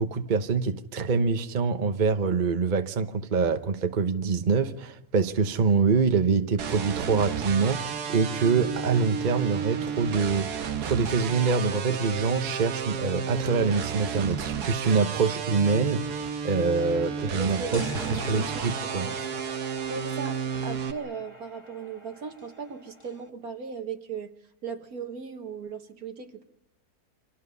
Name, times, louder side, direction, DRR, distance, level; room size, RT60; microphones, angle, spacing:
voice 1, 0.0-10.5 10.8-19.1, right 5 dB, 35° right, 1.1 m, -25 dB
sound 1, 6.6-20.9, right 6 dB, 85° right, 1.7 m, -32 dB
voice 2, 17.4-19.3 19.9-24.3 24.6-26.4, right 5 dB, 70° right, 2.1 m, -38 dB
sound 2, 17.7-23.3, left 1 dB, 20° left, 2.5 m, -43 dB
29.5 x 25.5 x 5.5 m
omnidirectional pair, 1.6 m